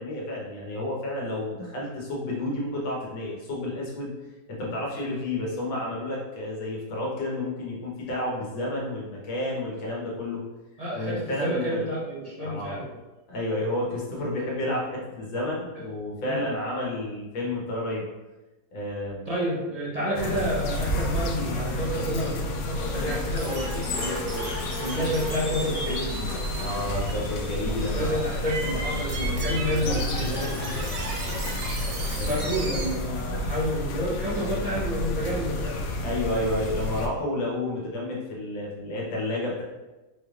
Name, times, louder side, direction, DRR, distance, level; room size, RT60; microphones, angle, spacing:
voice 1, 0.0-4.1 4.5-10.4 10.9-11.8 12.4-12.8 13.3-18.0 18.7-19.3 26.6-28.2 31.3-31.6 32.1-32.4 36.0-39.6, left 1 dB, 90° left, -3 dB, 1.7 m, -31 dB
voice 2, 10.8-12.9 16.2-16.4 19.3-26.3 27.9-30.9 32.3-35.8, equal, 45° right, -7 dB, 0.5 m, -30 dB
sound 1, 20.1-37.1, left 1 dB, 75° left, 0.8 m, -30 dB
sound 2, 23.4-32.9, right 2 dB, 75° right, 1.4 m, -36 dB
4.5 x 3.3 x 2.4 m, 1.1 s
omnidirectional pair, 2.0 m